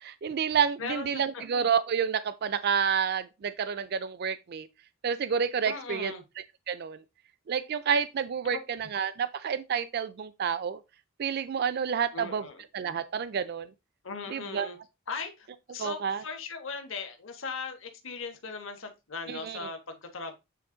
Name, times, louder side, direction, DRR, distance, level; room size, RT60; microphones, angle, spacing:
voice 1, 0.0-4.7 5.0-6.1 6.7-7.0 7.5-10.8 11.2-12.4 12.7-13.7 14.3-14.7 15.8-16.2 19.3-19.6, right 7 dB, 50° right, 0.4 m, -29 dB
voice 2, 0.8-1.4 5.6-6.2 8.5-8.6 12.1-12.6 14.0-14.8 15.1-20.3, left 4 dB, 70° left, 1.3 m, -38 dB
8.4 x 3.4 x 3.8 m
head